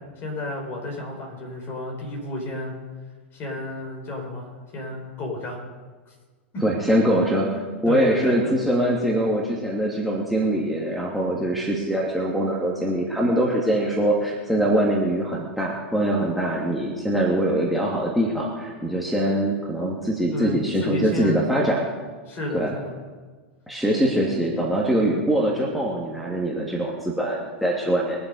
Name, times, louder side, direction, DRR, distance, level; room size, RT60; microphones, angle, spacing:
voice 1, 0.2-2.7 3.3-5.6 6.1-6.2 7.5-8.5 20.3-21.4 22.3-22.9, left 2 dB, 35° left, 1 dB, 5.3 m, -32 dB
voice 2, 6.6-7.5 7.8-21.8 22.5-22.7 23.7-28.2, right 1 dB, ahead, -4 dB, 2.4 m, -23 dB
22.5 x 7.7 x 5.5 m, 1.4 s
hypercardioid pair, 105°, 6 cm